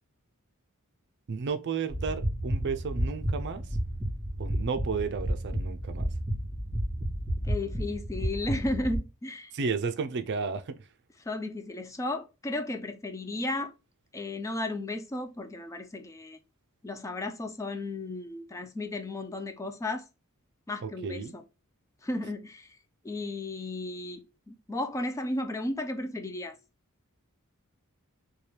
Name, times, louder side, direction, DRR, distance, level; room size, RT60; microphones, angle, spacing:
voice 1, 1.3-3.6 4.4-6.1 9.5-10.7 20.8-21.3, right 5 dB, 50° right, 0.4 m, -32 dB
sound 1, 1.9-9.0, equal, 15° right, 2.1 m, -32 dB
voice 2, 7.4-9.5 11.2-13.7 14.1-16.4 16.8-20.1 20.7-21.4 22.0-22.8 23.0-26.6, left 2 dB, 15° left, 0.3 m, -34 dB
4.3 x 2.3 x 3.2 m
head